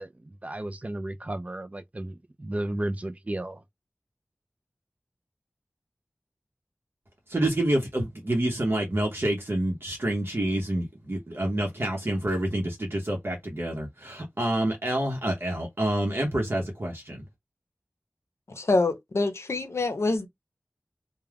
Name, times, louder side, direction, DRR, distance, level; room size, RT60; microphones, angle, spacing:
voice 1, 0.0-3.6, right 1 dB, 30° right, 0.4 m, -34 dB
voice 2, 7.3-17.2, right 1 dB, 55° right, 0.8 m, -28 dB
voice 3, 18.6-20.3, left 3 dB, 70° left, 0.6 m, -25 dB
2.3 x 2.2 x 3.3 m
wide cardioid pair, 55°, 5 cm